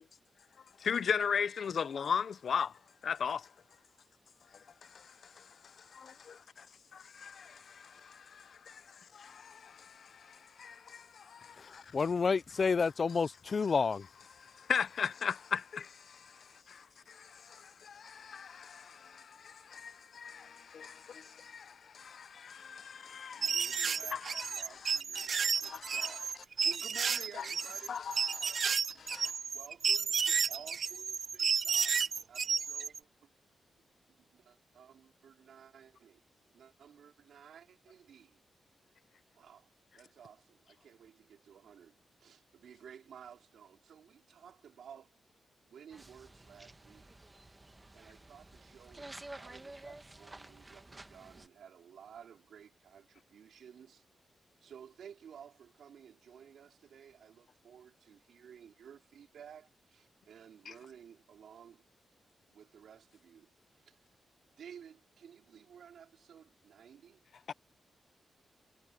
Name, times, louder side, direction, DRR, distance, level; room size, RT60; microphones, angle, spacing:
voice 1, 0.9-2.7 3.1-3.4 14.7-15.6 24.1-24.2 27.3-27.4 27.9-28.1, left 7 dB, 55° left, 0.8 m, -31 dB
voice 2, 11.9-14.1, left 5 dB, 35° left, 0.4 m, -29 dB
voice 3, 23.3-28.0 29.4-33.3 34.3-36.2 36.5-38.4 39.3-45.2 45.7-47.1 47.9-54.0 54.6-61.8 62.5-64.0 64.5-67.2, right 8 dB, 80° right, 4.9 m, -55 dB
sound 1, 23.4-33.0, right 6 dB, 50° right, 0.4 m, -32 dB
sound 2, 45.9-51.5, right 2 dB, 15° right, 1.4 m, -51 dB
wide cardioid pair, 155°, 0 cm